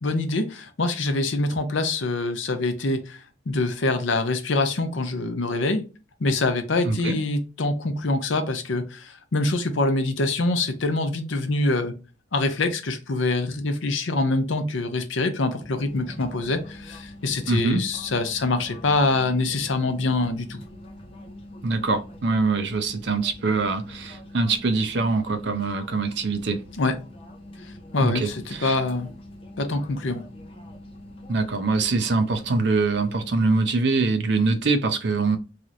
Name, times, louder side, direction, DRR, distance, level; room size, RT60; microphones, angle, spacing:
voice 1, 0.0-3.2 3.5-5.8 6.2-11.9 12.3-20.6 26.8-26.9 27.6-29.1 29.6-30.2, left 2 dB, 75° left, 0.6 m, -25 dB
voice 2, 6.8-7.2 17.5-17.8 21.6-26.6 28.0-28.8 31.3-35.4, right 3 dB, 55° right, 0.5 m, -24 dB
sound 1, 15.6-33.7, left 1 dB, 30° left, 0.6 m, -44 dB
3.2 x 2.9 x 2.5 m
head